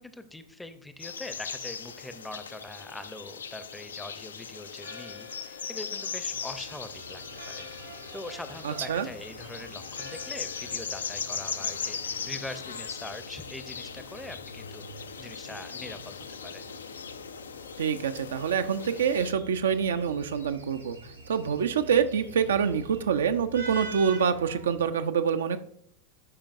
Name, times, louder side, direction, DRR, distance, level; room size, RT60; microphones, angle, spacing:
voice 1, 0.0-7.2 7.6-7.7 8.1-16.6, left 2 dB, 5° left, 10 dB, 0.6 m, -43 dB
sound 1, 1.0-19.3, left 6 dB, 70° left, 0.4 m, -39 dB
Church bell, 4.7-13.6, left 5 dB, 90° left, 2.2 m, -51 dB
sound 2, 6.2-24.9, right 3 dB, 90° right, 2.1 m, -47 dB
voice 2, 8.6-9.1 17.8-21.0 21.3-25.6, right 7 dB, 65° right, 9 dB, 0.5 m, -26 dB
12.0 x 5.1 x 2.5 m, 0.67 s
figure-of-eight pair, 90°, 0 cm